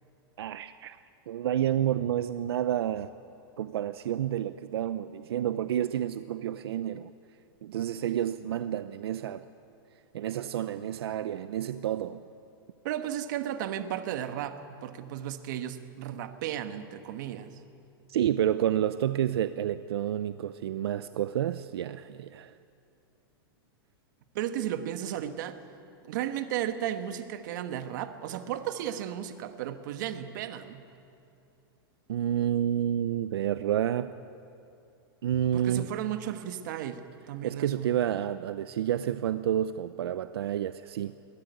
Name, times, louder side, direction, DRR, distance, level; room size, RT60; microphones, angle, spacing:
voice 1, 0.4-1.0 1.3-3.1 3.6-7.1 7.6-9.4 10.1-12.2 18.1-22.5 32.1-34.1 35.2-35.8 37.4-41.1, right 10 dB, 80° right, 13 dB, 0.7 m, -29 dB
voice 2, 12.8-17.6 24.3-25.6 26.0-30.8 35.5-37.9, right 11 dB, 50° right, 9 dB, 1.5 m, -34 dB
21.5 x 15.5 x 9.4 m, 2.5 s
supercardioid pair, 165°, 13 cm